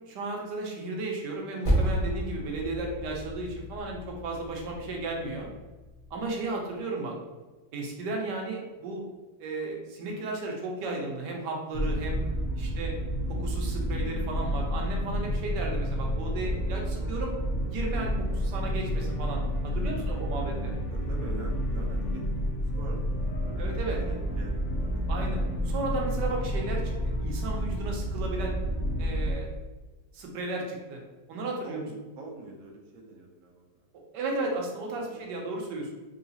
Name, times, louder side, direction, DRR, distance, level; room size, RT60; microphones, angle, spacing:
voice 1, 0.1-5.5 6.1-7.1 7.7-9.0 9.4-12.2 12.5-13.0 13.3-17.3 17.7-20.8 23.6-24.0 25.1-26.9 27.2-28.6 29.0-29.5 30.1-31.0 31.3-31.9 34.1-35.9, right 2 dB, 85° right, 0 dB, 1.3 m, -34 dB
Percussion, 1.6-6.5, equal, 25° left, 0.7 m, -32 dB
sound 1, 11.7-29.3, equal, 60° left, 0.8 m, -30 dB
voice 2, 20.9-25.0 31.3-33.7 34.4-34.5 35.0-35.2, right 2 dB, 65° right, 0 dB, 1.0 m, -45 dB
3.8 x 2.8 x 2.7 m, 1.2 s
omnidirectional pair, 1.8 m